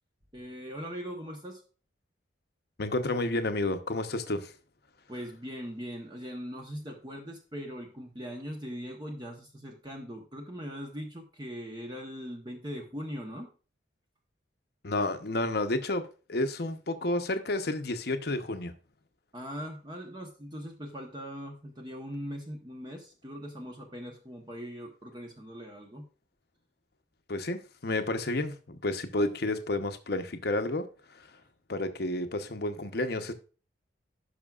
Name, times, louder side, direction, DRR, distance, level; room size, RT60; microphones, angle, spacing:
voice 1, 0.3-1.6 5.1-13.5 19.3-26.0, equal, 25° right, 1.0 m, -40 dB
voice 2, 2.8-4.5 14.8-18.7 27.3-31.3 31.7-33.3, left 2 dB, 60° left, 0.9 m, -31 dB
16.5 x 5.9 x 2.4 m
head